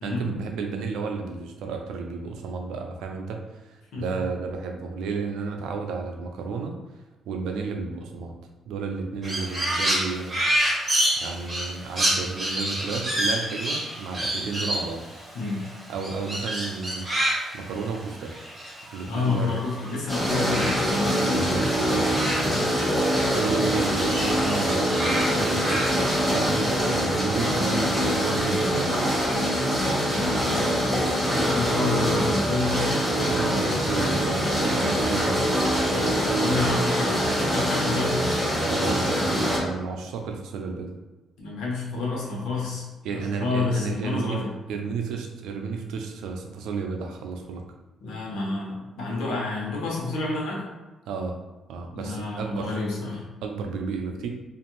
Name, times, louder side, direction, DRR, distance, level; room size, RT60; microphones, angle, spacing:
voice 1, 0.0-6.7 7.3-8.4 8.7-10.4 11.2-15.0 15.9-17.1 17.5-18.3 18.9-19.5 21.2-22.1 23.3-29.1 33.2-35.5 38.7-40.9 43.0-44.4 44.7-47.6 51.1-51.3 51.7-52.8 53.4-54.3, right 5 dB, 90° right, 3 dB, 0.4 m, -32 dB
Crow, 9.2-19.9 20.2-23.2 23.5-26.2, right 1 dB, 30° right, 1.3 m, -29 dB
voice 2, 19.1-21.3 22.3-22.7 30.1-32.8 35.9-38.2 41.4-42.9 43.1-44.5 48.0-50.6 51.9-53.2, left 3 dB, 85° left, -3 dB, 0.9 m, -29 dB
sound 1, 20.1-39.6, equal, 5° left, 1.0 m, -24 dB
2.6 x 2.5 x 3.0 m, 1.2 s
cardioid pair, 90°, 0 cm